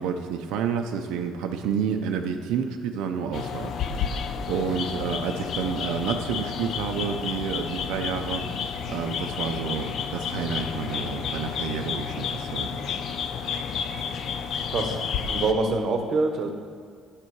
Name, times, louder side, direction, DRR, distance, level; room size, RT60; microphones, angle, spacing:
voice 1, 0.0-4.2 4.5-12.8, right 7 dB, 85° right, 4 dB, 0.6 m, -30 dB
sound 1, 3.3-15.5, left 6 dB, 45° left, 0.6 m, -31 dB
voice 2, 15.3-16.5, right 3 dB, 40° right, 5 dB, 0.8 m, -25 dB
9.9 x 6.7 x 4.7 m, 2.1 s
cardioid pair, 165°, 0 cm